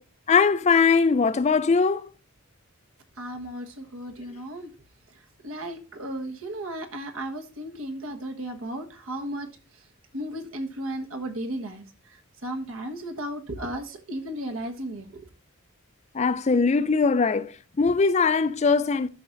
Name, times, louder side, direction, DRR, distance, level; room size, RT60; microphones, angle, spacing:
voice 1, 0.3-2.1 16.1-17.5 17.8-19.1, left 5 dB, 30° left, 0.4 m, -21 dB
voice 2, 3.2-4.7 5.4-9.5 10.1-11.8 12.4-15.2, right 1 dB, 75° right, 1.4 m, -34 dB
12.5 x 6.0 x 2.6 m
head